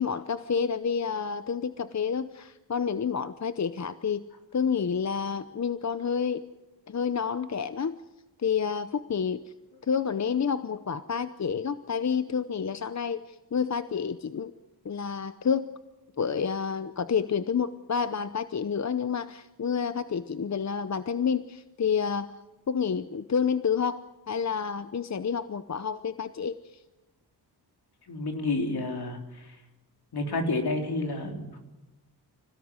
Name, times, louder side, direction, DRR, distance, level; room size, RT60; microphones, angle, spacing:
voice 1, 0.0-4.2 4.5-6.4 6.9-7.9 8.4-9.4 9.8-14.5 14.8-15.7 16.2-22.3 22.7-26.8, left 6 dB, 45° left, 12 dB, 0.8 m, -29 dB
voice 2, 28.1-29.4 30.1-31.6, left 2 dB, 70° left, 3 dB, 3.8 m, -30 dB
25.5 x 17.0 x 9.7 m, 1.1 s
wide cardioid pair, 105°, 40 cm